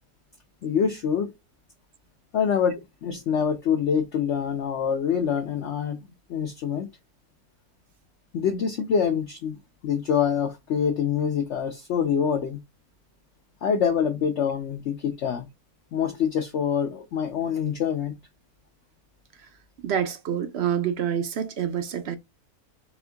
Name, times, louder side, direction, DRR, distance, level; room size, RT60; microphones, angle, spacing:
voice 1, 0.6-1.3 2.3-6.0 6.3-6.9 8.3-9.6 9.8-12.6 13.6-15.5 15.9-18.1, left 7 dB, 60° left, 0.8 m, -25 dB
voice 2, 19.8-22.2, right 9 dB, 60° right, 0.7 m, -27 dB
4.3 x 2.7 x 3.4 m
omnidirectional pair, 1.6 m